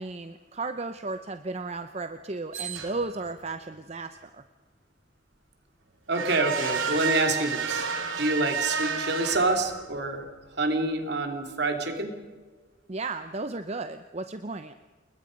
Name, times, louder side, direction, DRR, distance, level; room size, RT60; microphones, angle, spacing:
voice 1, 0.0-4.4 12.9-14.7, right 3 dB, 35° right, 9 dB, 0.7 m, -34 dB
sound 1, 2.5-3.3 6.1-10.0, right 6 dB, 90° right, 3.1 m, -31 dB
voice 2, 6.1-7.9 8.2-10.2 10.5-12.2, right 2 dB, 55° right, 5 dB, 3.0 m, -27 dB
29.0 x 21.5 x 5.3 m, 1.4 s
head